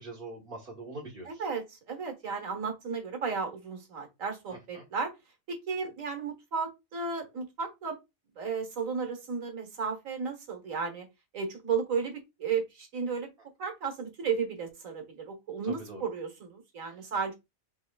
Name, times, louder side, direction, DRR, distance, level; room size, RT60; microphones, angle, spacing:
voice 1, 0.0-1.4 4.5-4.8 15.6-16.0, right 2 dB, 45° right, 1.5 m, -43 dB
voice 2, 1.3-5.1 5.5-8.0 8.4-11.1 11.3-13.3 13.6-17.4, right 5 dB, 70° right, 1.7 m, -34 dB
5.7 x 3.6 x 2.3 m
omnidirectional pair, 1.4 m